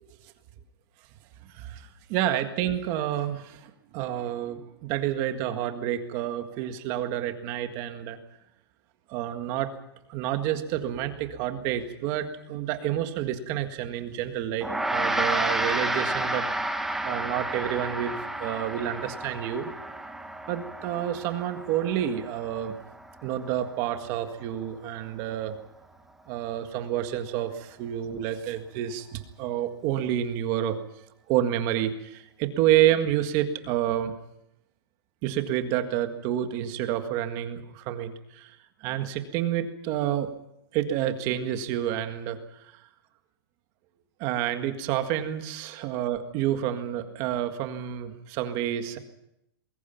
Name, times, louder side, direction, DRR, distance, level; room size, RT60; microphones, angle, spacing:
voice 1, 1.4-8.2 9.1-9.7 10.1-16.5 17.0-19.7 20.5-22.8 23.2-25.6 26.3-30.8 31.3-34.2 35.2-40.3 40.7-42.4 44.2-49.0, right 11 dB, 30° right, 8 dB, 1.8 m, -29 dB
Gong, 14.6-24.1, right 1 dB, ahead, 1.1 m, -31 dB
27.5 x 21.5 x 5.8 m, 0.80 s
hypercardioid pair, 170°, 13 cm